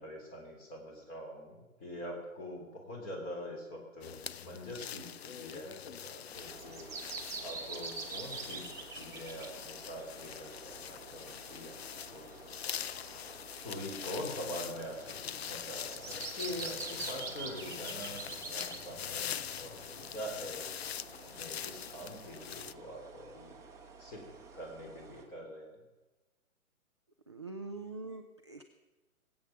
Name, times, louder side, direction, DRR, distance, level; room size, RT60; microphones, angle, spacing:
voice 1, 0.0-6.9 7.4-8.7 8.9-12.9 13.6-18.2 18.5-20.7 21.3-23.5 24.0-24.2 24.5-25.8, equal, 20° left, 1 dB, 3.5 m, -44 dB
sound 1, 4.0-22.7, left 9 dB, 50° left, 0.5 m, -43 dB
sound 2, 6.3-25.2, right 4 dB, 5° right, 1.2 m, -47 dB
voice 2, 27.3-28.6, right 3 dB, 20° right, 3 dB, 0.3 m, -43 dB
20.5 x 8.6 x 5.9 m, 1.2 s
figure-of-eight pair, 130°, 42 cm